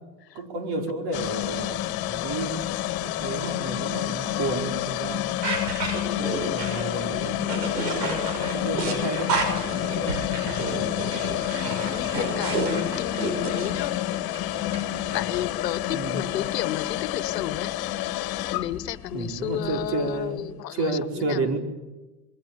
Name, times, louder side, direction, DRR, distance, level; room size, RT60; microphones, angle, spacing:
voice 1, 0.3-5.3 6.1-9.3 9.7-10.9 15.9-16.3 19.1-20.4 20.7-21.6, right 2 dB, 50° right, 4 dB, 5.2 m, -31 dB
sound 1, 1.1-20.2, left 14 dB, 45° left, 1.8 m, -29 dB
sound 2, 5.4-13.7, right 3 dB, 75° right, 6.6 m, -30 dB
sound 3, 9.5-15.8 16.1-16.2, equal, 10° right, 6.1 m, -43 dB
voice 2, 11.6-13.9 15.1-17.7 18.5-21.5, left 12 dB, 75° left, 16 dB, 1.4 m, -32 dB
27.5 x 22.5 x 8.8 m, 1.1 s
hypercardioid pair, 75°, 49 cm